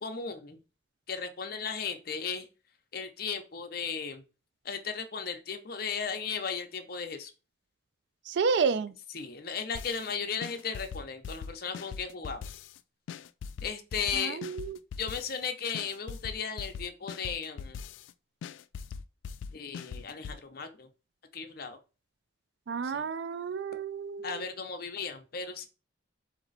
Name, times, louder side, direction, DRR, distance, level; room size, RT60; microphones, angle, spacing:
voice 1, 0.0-0.6 1.1-2.5 2.9-4.2 4.6-7.3 9.1-12.5 13.6-14.4 15.0-17.8 19.5-20.9 21.3-21.8 22.8-23.1 24.2-25.7, left 6 dB, 50° left, 0.7 m, -36 dB
voice 2, 8.3-9.0 14.1-14.8 22.7-24.4, right 5 dB, 60° right, 0.4 m, -30 dB
sound 1, 9.7-10.1 10.4-12.8 13.1-15.4 15.7-18.1 18.4-20.4, left 6 dB, 75° left, 0.3 m, -41 dB
4.1 x 2.9 x 3.9 m
head